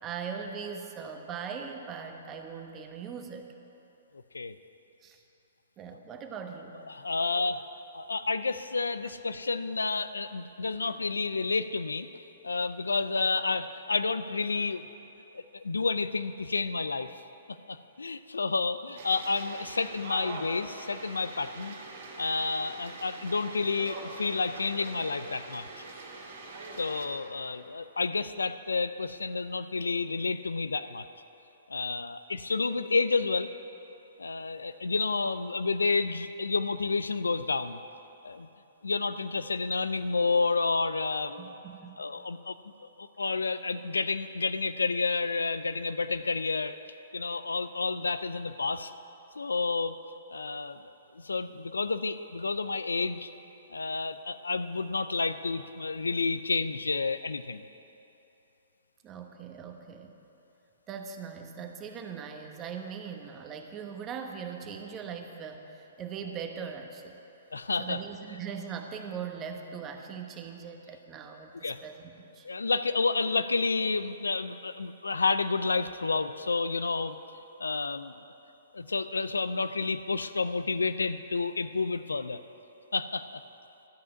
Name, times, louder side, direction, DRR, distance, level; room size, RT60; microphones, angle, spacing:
voice 1, 0.0-3.5 5.0-5.2 5.8-6.8 7.2-7.3 9.0-9.1 41.4-42.0 59.0-60.2 60.9-67.2 67.8-72.5, right 6 dB, 25° right, 4 dB, 1.0 m, -40 dB
voice 2, 6.9-7.6 7.9-12.1 12.4-14.9 15.3-17.1 17.7-21.8 22.2-25.7 26.8-31.0 31.7-33.5 34.2-37.8 38.2-38.5 38.8-41.5 42.0-42.6 42.8-46.7 47.1-48.9 49.4-50.0 50.3-50.8 51.1-53.3 53.7-57.7 67.5-68.0 71.6-71.8 72.4-77.2 77.6-78.1 78.7-82.4 82.9-83.4, left 4 dB, 90° left, 12 dB, 0.4 m, -30 dB
sound 1, 18.9-27.1, right 3 dB, 65° right, 2.2 m, -43 dB
12.0 x 5.6 x 8.5 m, 3.0 s
hypercardioid pair, 130°, 0 cm